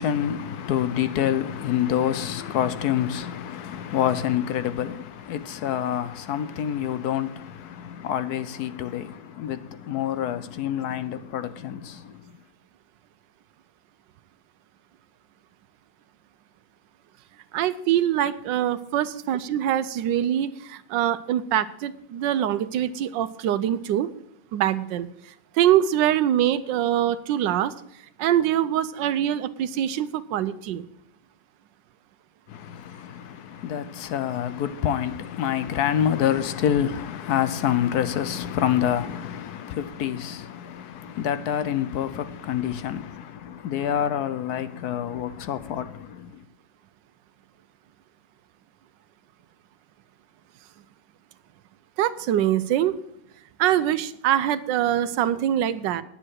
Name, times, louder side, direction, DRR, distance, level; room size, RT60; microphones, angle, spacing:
voice 1, 0.0-12.2 32.5-46.4, left 10 dB, 70° left, 1.1 m, -27 dB
voice 2, 17.5-24.1 24.5-25.1 25.5-27.7 28.2-30.8 52.0-53.0 53.6-56.0, right 11 dB, 90° right, 1.3 m, -24 dB
10.0 x 8.7 x 6.4 m
omnidirectional pair, 1.9 m